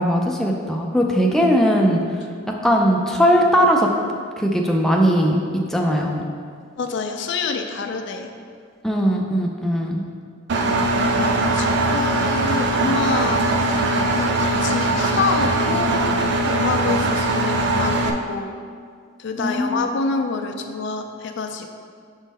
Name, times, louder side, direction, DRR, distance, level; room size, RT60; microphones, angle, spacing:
voice 1, 0.0-2.0 2.6-3.9 4.4-5.4 5.7-6.3 8.8-10.0 19.4-19.9, equal, ahead, 0 dB, 0.4 m, -19 dB
voice 2, 6.8-8.3 11.1-13.8 14.1-16.2 16.5-18.6 19.2-21.7, left 4 dB, 65° left, 5 dB, 0.4 m, -27 dB
Engine, 10.5-18.1, right 2 dB, 60° right, 0.4 m, -20 dB
6.1 x 3.7 x 4.1 m, 2.1 s
head